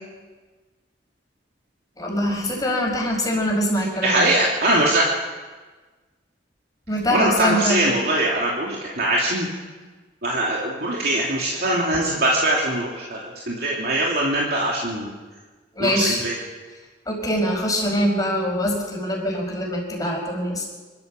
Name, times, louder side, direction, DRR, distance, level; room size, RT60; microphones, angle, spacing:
voice 1, 2.0-4.2 6.9-7.9 15.8-16.2 17.1-20.6, equal, 20° left, 0 dB, 5.1 m, -23 dB
voice 2, 4.0-5.1 7.1-9.5 10.2-15.1 15.8-16.3, right 1 dB, 60° right, -3 dB, 2.9 m, -22 dB
25.0 x 13.5 x 7.7 m, 1.3 s
head